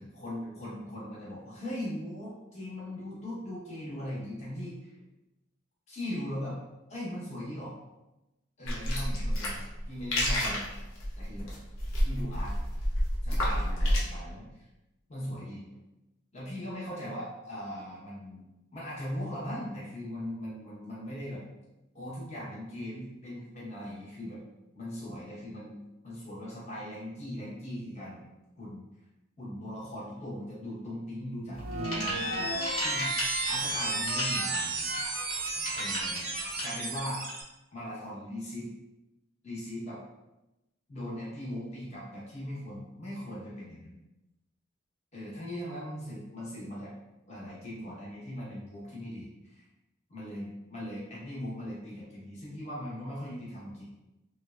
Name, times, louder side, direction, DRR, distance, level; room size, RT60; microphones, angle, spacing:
voice 1, 0.0-4.9 5.9-6.6 6.9-7.7 8.6-10.7 11.2-11.5 12.0-12.5 13.2-14.6 15.1-15.6 16.3-18.4 18.7-21.4 21.9-24.4 24.7-28.2 28.6-28.8 29.4-34.9 35.7-36.3 36.6-37.2 37.7-38.7 39.4-40.0 40.9-44.0 45.1-46.9 47.3-49.6 50.1-53.8, left 1 dB, 30° left, -7 dB, 0.9 m, -39 dB
sound 1, 8.7-14.0, equal, 85° left, 0.7 m, -29 dB
sound 2, 31.5-36.6, left 1 dB, 65° left, 1.0 m, -37 dB
sound 3, 31.5-37.4, right 2 dB, 45° right, 0.4 m, -32 dB
3.1 x 2.1 x 2.4 m, 0.98 s
head